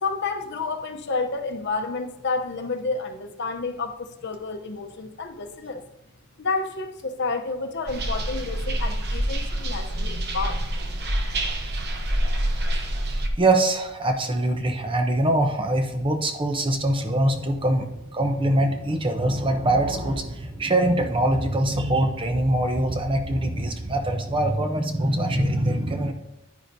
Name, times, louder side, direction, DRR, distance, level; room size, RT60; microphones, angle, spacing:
voice 1, 0.0-5.8 6.4-10.6, left 3 dB, 55° left, 6 dB, 0.8 m, -30 dB
sound 1, 7.9-13.3, right 1 dB, 50° right, 0.9 m, -26 dB
voice 2, 13.4-26.1, right 1 dB, 25° right, 6 dB, 0.7 m, -23 dB
10.0 x 9.5 x 2.7 m, 0.91 s
head